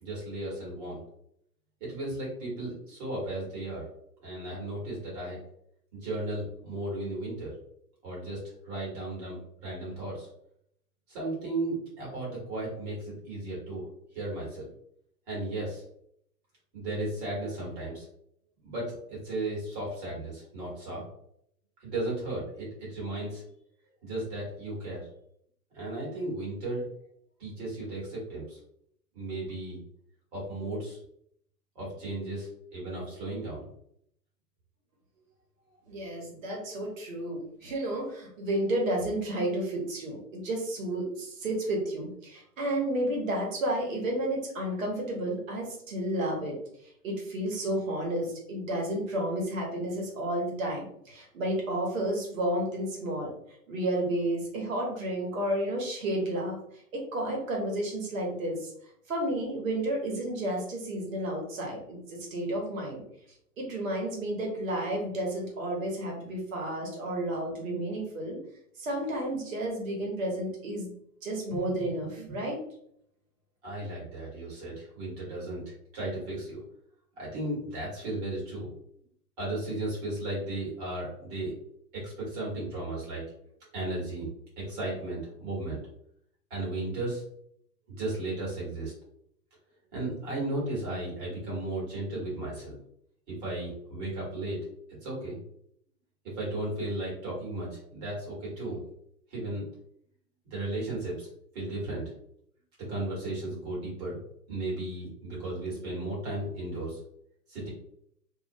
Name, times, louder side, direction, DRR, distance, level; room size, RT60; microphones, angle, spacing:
voice 1, 0.0-1.0 1.8-3.8 4.2-5.4 5.9-7.5 8.0-10.3 11.1-13.9 14.1-14.7 15.3-15.8 16.7-18.1 18.6-21.0 21.8-23.4 24.0-25.0 25.7-26.9 27.4-28.6 29.1-29.8 30.3-31.0 31.7-33.7 71.5-71.7 72.2-72.3 73.6-76.6 77.2-78.7 79.4-81.5 81.9-83.2 83.7-85.8 86.5-87.2 87.9-88.9 89.9-92.7 93.3-94.6 95.0-95.4 96.2-98.8 99.3-99.6 100.4-101.3 101.5-102.0 102.9-104.2 104.5-107.0 107.5-107.7, right 2 dB, 25° right, -4 dB, 1.1 m, -35 dB
voice 2, 35.9-46.6 47.0-53.3 53.7-58.7 59.1-63.0 63.6-68.4 68.8-70.9 71.2-72.6, right 1 dB, 55° right, 0 dB, 1.0 m, -31 dB
2.5 x 2.0 x 2.6 m, 0.70 s
hypercardioid pair, 145°, 50 cm